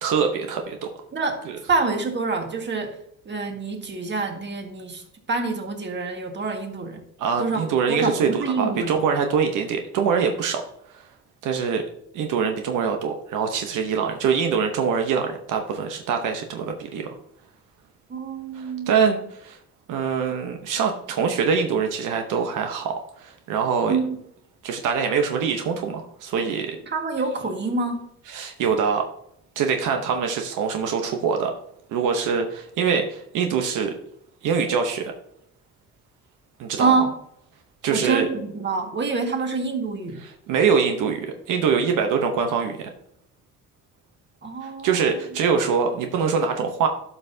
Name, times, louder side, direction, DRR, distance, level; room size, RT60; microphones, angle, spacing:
voice 1, 0.0-0.9 1.5-1.6 7.2-10.6 10.9-11.1 11.4-11.8 12.1-17.2 18.5-19.6 19.9-24.0 24.6-26.8 28.3-29.1 29.6-31.5 31.9-33.9 34.4-35.1 36.6-36.9 37.8-38.2 40.2-42.9 44.6-46.9, right 6 dB, 85° right, 4 dB, 0.9 m, -24 dB
voice 2, 1.1-3.0 3.2-5.0 5.3-7.0 7.4-9.0 18.1-18.9 23.9-24.2 26.9-28.0 36.8-37.1 37.9-40.2 44.4-45.0, right 4 dB, 35° right, 3 dB, 1.7 m, -26 dB
12.0 x 5.6 x 2.7 m, 0.73 s
cardioid pair, 90°, 30 cm